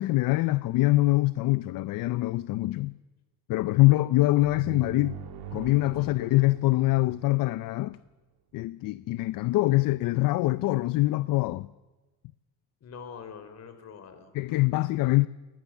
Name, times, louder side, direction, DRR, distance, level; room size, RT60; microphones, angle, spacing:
voice 1, 0.0-2.9 3.5-5.2 5.5-8.0 8.5-11.7 14.3-15.3, left 19 dB, 65° left, 0.6 m, -24 dB
sound 1, 4.4-8.0, right 8 dB, 80° right, 2.5 m, -43 dB
voice 2, 12.8-14.7, left 6 dB, 45° left, 3.5 m, -45 dB
22.5 x 19.5 x 7.2 m
cardioid pair, 135°, 36 cm